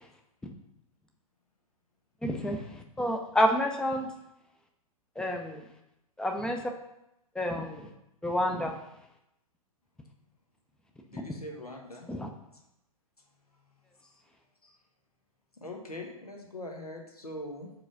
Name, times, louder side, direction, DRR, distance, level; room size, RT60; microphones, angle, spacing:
voice 1, 2.2-4.1 5.2-5.6 6.2-6.6 7.4-7.9 8.2-8.7 11.1-11.2 12.1-12.3, equal, 5° left, 3 dB, 0.5 m, -29 dB
voice 2, 11.1-12.1 14.6-14.7 15.6-17.7, left 1 dB, 85° left, 2 dB, 1.1 m, -42 dB
4.8 x 3.9 x 5.1 m, 0.85 s
figure-of-eight pair, 105°, 19 cm